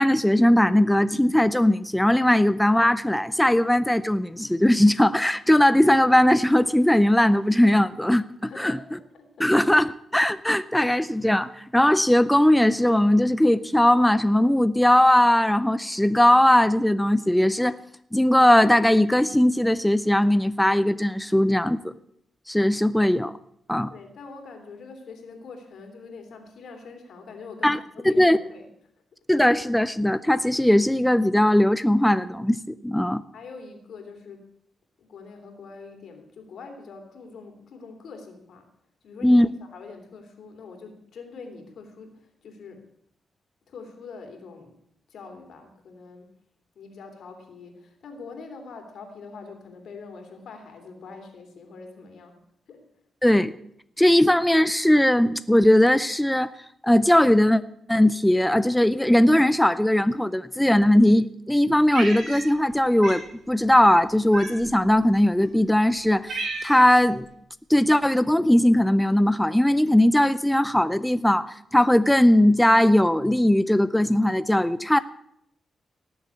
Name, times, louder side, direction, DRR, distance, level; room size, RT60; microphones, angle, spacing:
voice 1, 0.0-8.8 9.4-17.7 18.1-21.9 22.5-23.3 23.7-23.9 27.6-27.8 28.0-28.4 29.3-33.2 39.2-39.5 53.2-53.5 54.0-56.5 56.8-57.6 57.9-67.3 67.7-75.0, left 1 dB, 5° left, 13 dB, 0.5 m, -19 dB
voice 2, 8.4-9.5 23.8-28.7 33.3-34.5 35.0-38.7 39.0-42.8 43.7-44.8 45.1-46.3 46.7-52.4 52.7-52.8, left 4 dB, 75° left, 5 dB, 3.1 m, -44 dB
Cat, 61.9-62.7 63.0-63.3 64.3-64.8 65.5-65.6 66.0-67.0, right 3 dB, 70° right, 4.3 m, -33 dB
18.0 x 7.2 x 8.3 m, 0.73 s
cardioid pair, 100°, 0 cm